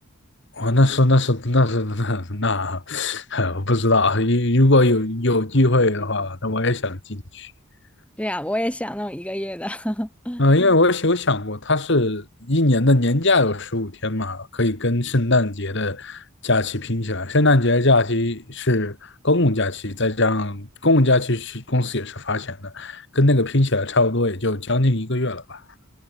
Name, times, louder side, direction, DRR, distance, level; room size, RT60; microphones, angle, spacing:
voice 1, 0.5-7.5 10.4-25.6, left 2 dB, 55° left, 2.2 m, -20 dB
voice 2, 8.2-10.4, equal, 5° left, 5.6 m, -28 dB
head